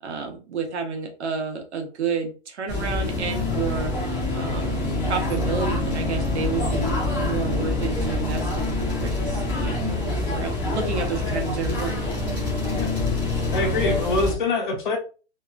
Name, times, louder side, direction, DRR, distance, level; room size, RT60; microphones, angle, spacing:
voice 1, 0.0-3.9 4.3-9.9 10.2-12.1, right 5 dB, 80° right, 4 dB, 0.9 m, -30 dB
sound 1, 2.7-14.3, left 2 dB, 10° left, 0.5 m, -26 dB
voice 2, 13.5-15.0, left 3 dB, 45° left, 3 dB, 0.7 m, -24 dB
2.8 x 2.4 x 2.3 m, 0.35 s
hypercardioid pair, 175°, 33 cm